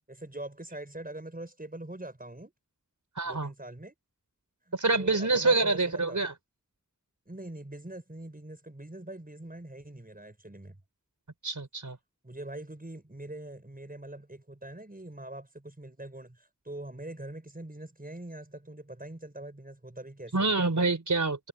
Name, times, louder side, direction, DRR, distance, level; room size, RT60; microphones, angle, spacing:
voice 1, 0.1-2.5 3.2-3.9 4.7-6.2 7.3-10.8 12.2-20.5, right 1 dB, 30° right, 6.1 m, -43 dB
voice 2, 3.2-3.5 4.7-6.3 11.4-12.0 20.3-21.5, right 3 dB, 80° right, 4.5 m, -26 dB
wide cardioid pair, 55°, 30 cm